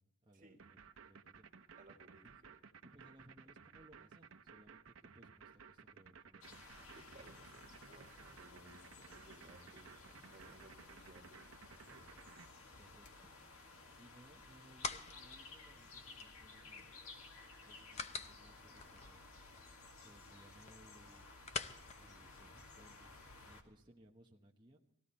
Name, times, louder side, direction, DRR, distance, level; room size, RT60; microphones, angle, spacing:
voice 1, 0.0-1.5 2.2-2.3 2.9-6.6 12.7-13.6 14.0-16.9 17.6-19.3 20.0-21.5 22.0-24.8, right 1 dB, 20° right, -1 dB, 1.0 m, -64 dB
sound 1, 0.6-12.5, right 6 dB, 70° right, 0.8 m, -58 dB
voice 2, 1.8-2.2 7.0-12.1, right 1 dB, 35° right, 0 dB, 2.1 m, -61 dB
sound 2, 6.4-23.6, left 3 dB, 75° left, 2.0 m, -57 dB
sound 3, 14.2-23.1, left 5 dB, 30° left, 0.6 m, -49 dB
19.0 x 15.5 x 4.2 m, 0.81 s
head